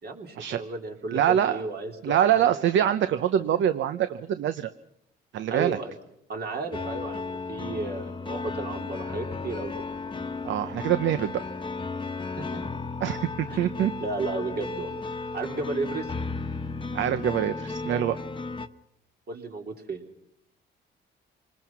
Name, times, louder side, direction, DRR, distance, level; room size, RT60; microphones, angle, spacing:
voice 1, 0.0-3.1 3.5-3.6 5.5-6.0 6.3-9.7 12.4-12.6 13.5-15.0 15.3-16.1 19.3-20.0, right 3 dB, 50° right, 3 dB, 3.5 m, -34 dB
voice 2, 1.1-1.6 2.0-4.7 5.3-5.8 10.4-11.4 13.0-13.9 16.9-18.2, right 10 dB, 70° right, 12 dB, 0.8 m, -24 dB
sound 1, 6.7-18.7, left 4 dB, 25° left, 1.1 m, -34 dB
26.5 x 20.0 x 6.0 m, 0.76 s
cardioid pair, 90°, 20 cm